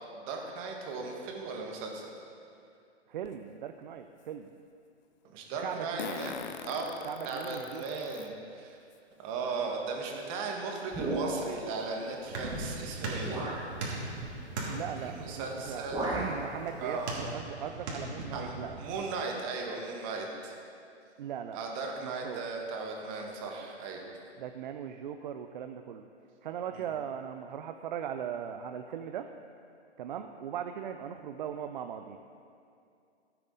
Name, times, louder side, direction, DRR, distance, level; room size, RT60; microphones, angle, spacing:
voice 1, 0.1-2.1 5.2-6.9 7.2-8.8 9.2-13.4 15.0-16.2 16.8-17.2 18.3-20.6 21.5-24.0 26.7-26.8, right 4 dB, 30° right, 1 dB, 1.7 m, -37 dB
voice 2, 3.1-4.5 5.6-6.3 7.0-7.8 14.7-15.9 16.1-18.8 21.2-21.6 22.0-22.5 24.4-26.1 26.4-29.3 30.0-32.2, right 8 dB, 45° right, 7 dB, 0.5 m, -39 dB
Fart, 3.3-3.4 6.0-8.3 8.9-9.0 10.3-10.4 10.8-10.9 11.3-11.5, left 8 dB, 40° left, 0.6 m, -41 dB
sound 1, 10.9-11.7 12.6-12.7 13.2-13.7 15.1-15.3 15.6-16.4, right 2 dB, 10° right, 1.8 m, -34 dB
sound 2, 11.9-19.0, right 2 dB, 65° right, 2.9 m, -39 dB
16.0 x 7.6 x 3.9 m, 2.5 s
hypercardioid pair, 140°, 35 cm